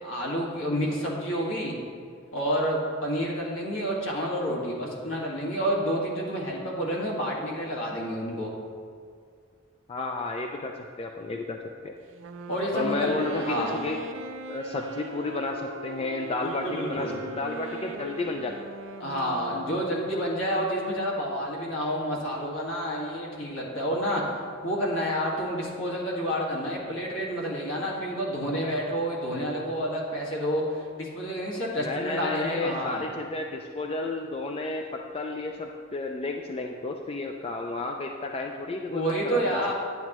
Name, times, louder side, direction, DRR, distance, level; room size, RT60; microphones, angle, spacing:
voice 1, 0.0-1.8 2.3-8.5 12.5-13.8 16.4-17.2 19.0-24.2 24.6-33.1 38.9-39.7, equal, 70° left, -3 dB, 1.9 m, -29 dB
voice 2, 9.9-11.6 11.8-11.9 12.7-14.0 14.5-18.7 31.8-39.7, left 3 dB, 30° left, 2 dB, 0.4 m, -32 dB
Wind instrument woodwind instrument, 12.1-20.2, right 2 dB, 70° right, 0.5 m, -40 dB
9.5 x 9.1 x 3.0 m, 2.1 s
head